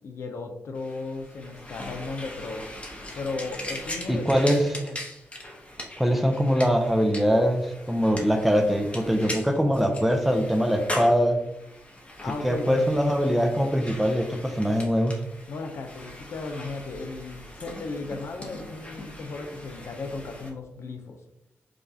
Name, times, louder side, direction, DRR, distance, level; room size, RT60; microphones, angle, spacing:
voice 1, 0.0-2.6 3.1-5.0 12.2-12.9 15.5-21.2, left 3 dB, 75° left, 5 dB, 0.5 m, -35 dB
sound 1, 0.7-20.5, left 1 dB, 30° left, 0.9 m, -40 dB
voice 2, 4.1-4.6 6.0-11.4 12.4-15.2, equal, 5° right, 5 dB, 0.6 m, -22 dB
4.9 x 2.3 x 2.7 m, 0.85 s
cardioid pair, 70°, 5 cm